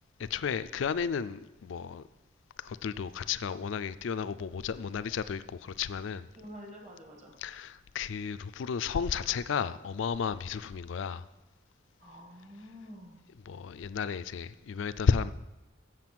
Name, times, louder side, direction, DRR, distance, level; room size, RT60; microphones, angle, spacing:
voice 1, 0.2-2.0 2.6-6.3 7.4-11.2 13.5-15.3, left 6 dB, 65° left, 0.4 m, -33 dB
voice 2, 6.4-7.4 12.0-13.2, equal, 35° right, 1.8 m, -48 dB
7.5 x 7.5 x 6.1 m
head